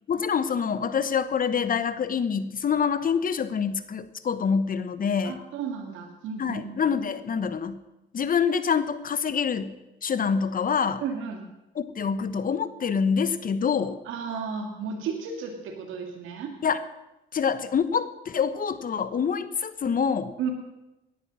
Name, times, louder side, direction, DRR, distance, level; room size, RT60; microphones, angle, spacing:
voice 1, 0.1-5.4 6.4-7.8 8.1-9.8 10.0-11.0 11.7-14.0 16.6-16.8 17.3-20.3, left 6 dB, 45° left, 13 dB, 1.1 m, -26 dB
voice 2, 5.2-6.6 11.0-11.5 14.1-16.5 20.4-20.5, right 6 dB, 90° right, 3 dB, 2.0 m, -33 dB
17.0 x 10.5 x 6.2 m, 0.96 s
cardioid pair, 90°, 20 cm